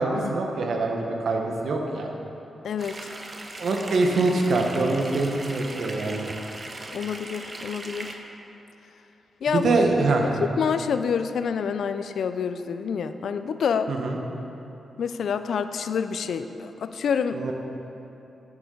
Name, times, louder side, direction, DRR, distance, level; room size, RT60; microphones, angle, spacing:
voice 1, 0.0-2.1 3.6-6.3 9.5-10.2 13.9-14.2 17.3-17.5, right 3 dB, 70° right, 2 dB, 1.1 m, -24 dB
voice 2, 2.6-3.0 6.9-8.2 9.4-9.7 10.2-13.9 15.0-17.4, left 6 dB, 75° left, 10 dB, 0.4 m, -27 dB
sound 1, 2.8-8.2, right 2 dB, 35° right, 0.8 m, -39 dB
9.5 x 9.3 x 3.9 m, 2.9 s
cardioid pair, 85°, 0 cm